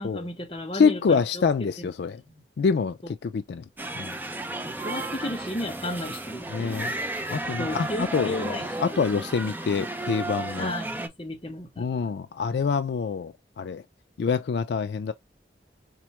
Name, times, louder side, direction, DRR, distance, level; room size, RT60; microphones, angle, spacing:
voice 1, 0.0-1.4 1.8-1.9 2.3-2.4 4.6-6.8 7.6-8.9 10.6-12.1, left 1 dB, 30° left, 0.8 m, -34 dB
voice 2, 0.7-2.2 2.6-3.6 4.0-4.1 6.5-6.9 7.3-10.7 11.8-13.8 14.2-15.1, left 5 dB, 75° left, 0.3 m, -26 dB
sound 1, 3.8-11.1, right 2 dB, 10° right, 0.3 m, -33 dB
4.3 x 2.2 x 2.9 m
head